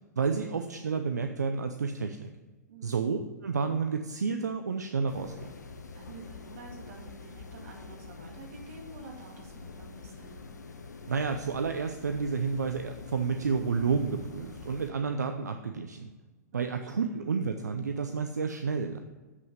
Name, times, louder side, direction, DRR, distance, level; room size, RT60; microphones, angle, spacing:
voice 1, 0.2-2.3 2.8-5.3 11.1-16.1 16.5-19.0, right 5 dB, 75° right, 7 dB, 0.6 m, -30 dB
sound 1, 5.1-14.9, left 4 dB, 75° left, 0.9 m, -46 dB
voice 2, 5.9-10.4 16.5-17.3, right 3 dB, 50° right, 1 dB, 2.3 m, -49 dB
7.8 x 6.1 x 5.6 m, 1.3 s
figure-of-eight pair, 105°, 9 cm